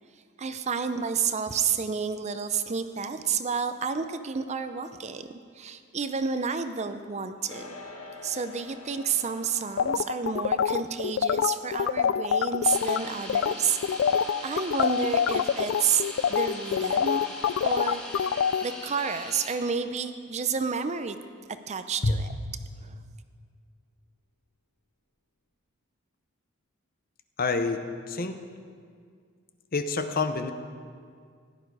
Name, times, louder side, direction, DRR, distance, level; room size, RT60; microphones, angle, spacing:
voice 1, 0.4-5.3 5.6-7.8 8.2-14.0 14.4-17.2 17.6-18.3 18.6-21.2 21.7-22.3 22.8-23.0, right 6 dB, 30° right, 10 dB, 0.5 m, -30 dB
sound 1, 7.5-17.0, left 3 dB, 80° left, 1.8 m, -50 dB
sound 2, 9.8-13.0 13.3-13.5 13.8-18.6, left 8 dB, 65° left, 0.3 m, -25 dB
sound 3, 12.6-19.5, left 1 dB, 5° left, 2.0 m, -40 dB
voice 2, 27.4-28.4 29.7-30.5, left 3 dB, 45° left, 8 dB, 0.8 m, -27 dB
15.5 x 11.5 x 4.8 m, 2.1 s
head